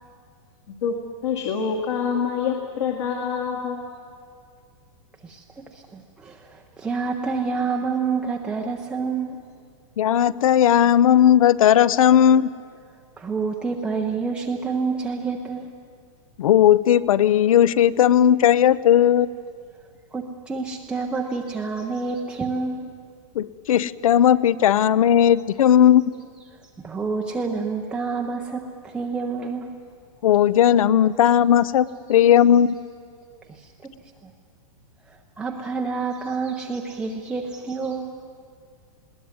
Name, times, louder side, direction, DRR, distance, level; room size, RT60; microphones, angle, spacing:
voice 1, 1.2-3.8, left 6 dB, 60° left, -1 dB, 2.2 m, -25 dB
voice 2, 5.2-9.4 13.2-15.7 19.2-19.3 20.1-22.9 26.4-26.5 26.8-29.7 32.1-32.2 33.5-33.9 35.1-38.1, right 4 dB, 5° right, 0 dB, 0.5 m, -28 dB
voice 3, 10.0-12.5 16.4-19.3 23.3-26.0 30.2-32.8, left 10 dB, 75° left, 20 dB, 0.7 m, -16 dB
20.5 x 17.5 x 9.5 m, 2.2 s
supercardioid pair, 175°, 18 cm